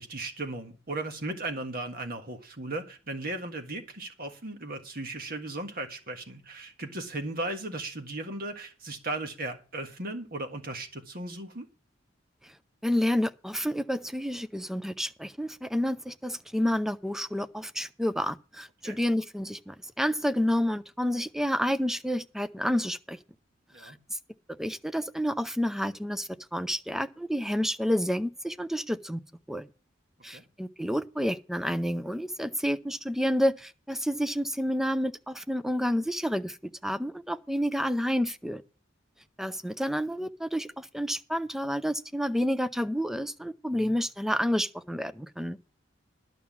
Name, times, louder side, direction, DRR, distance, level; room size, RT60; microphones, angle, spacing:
voice 1, 0.0-11.6 18.8-19.0 23.7-24.0 30.3-30.4 43.7-44.0, right 2 dB, 50° right, 1.6 m, -36 dB
voice 2, 12.8-23.2 23.8-24.2 24.6-29.2 29.5-29.7 30.2-36.6 36.8-38.6 39.4-45.6, equal, ahead, 0.5 m, -29 dB
11.5 x 5.9 x 7.2 m
head